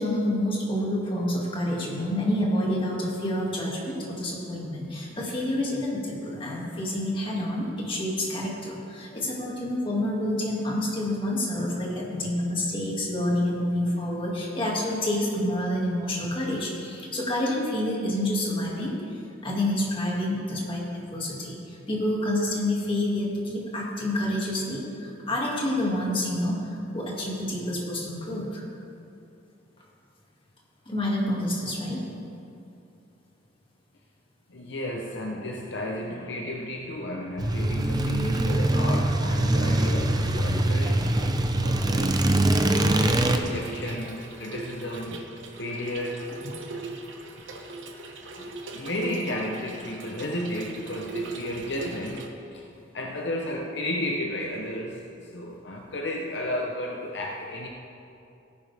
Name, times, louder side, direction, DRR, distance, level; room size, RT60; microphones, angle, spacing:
voice 1, 0.0-20.8 21.1-28.6 30.9-32.0, left 1 dB, 25° left, -4 dB, 2.2 m, -28 dB
voice 2, 34.5-42.3 43.0-45.3 45.6-46.3 48.4-52.7 52.9-57.7, left 1 dB, 60° left, 0 dB, 0.8 m, -33 dB
sound 1, 37.4-43.4, right 1 dB, 20° right, 0.5 m, -23 dB
Trickle dribble / Fill (with liquid), 43.3-52.3, right 3 dB, 75° right, 1.1 m, -40 dB
17.0 x 9.7 x 3.4 m, 2.6 s
head